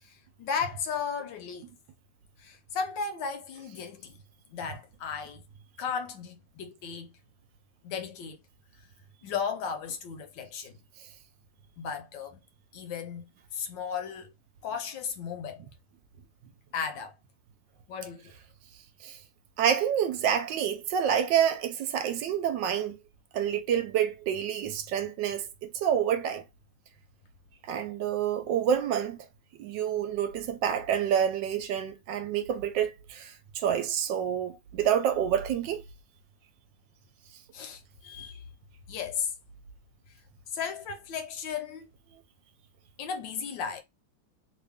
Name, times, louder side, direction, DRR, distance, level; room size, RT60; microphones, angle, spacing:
voice 1, 0.0-1.7 2.4-4.2 4.5-5.4 5.8-7.1 7.8-8.4 9.2-10.8 11.8-12.4 12.7-14.3 14.6-15.7 16.7-17.2 17.9-18.3 37.5-38.5 38.9-39.3 40.5-41.9 43.0-43.8, left 6 dB, 75° left, 1.3 m, -35 dB
voice 2, 19.6-23.0 23.3-25.5 25.7-26.4 27.7-29.2 29.6-35.8, right 9 dB, 75° right, 1.2 m, -28 dB
3.1 x 2.6 x 3.4 m
omnidirectional pair, 2.1 m